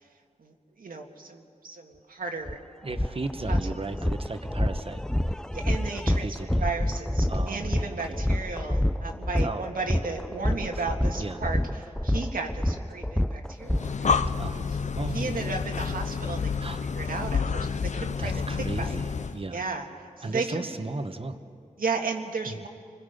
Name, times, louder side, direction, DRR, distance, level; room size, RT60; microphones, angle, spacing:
voice 1, 0.8-2.6 3.5-3.6 5.5-14.2 15.1-16.5 16.9-18.4 18.8-19.0 19.5-19.9 20.2-20.7 21.8-22.7, right 4 dB, 90° right, 2 dB, 1.9 m, -34 dB
sound 1, 2.5-2.6 2.9-14.3, left 1 dB, 5° left, 0.4 m, -27 dB
voice 2, 2.8-5.0 6.0-6.6 7.3-8.2 9.4-9.6 10.5-10.8 11.2-11.4 14.3-15.6 16.6-16.8 18.2-19.6 20.2-21.4 22.5-22.6, right 2 dB, 40° right, 8 dB, 1.2 m, -35 dB
Breathing, 13.6-19.4, left 5 dB, 55° left, 0.5 m, -29 dB
30.0 x 21.0 x 5.3 m, 2.4 s
wide cardioid pair, 90°, 14 cm